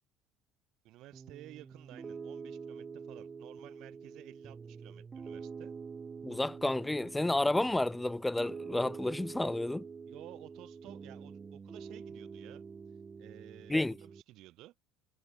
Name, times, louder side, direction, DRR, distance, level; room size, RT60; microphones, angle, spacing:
voice 1, 0.8-5.7 10.1-12.6 13.2-14.7, right 17 dB, 65° right, 3.7 m, -54 dB
Piano, 1.1-14.2, right 5 dB, 30° right, 3.1 m, -46 dB
voice 2, 6.2-9.8 13.7-14.0, left 2 dB, 10° left, 0.5 m, -31 dB
hypercardioid pair, 75°, 0 cm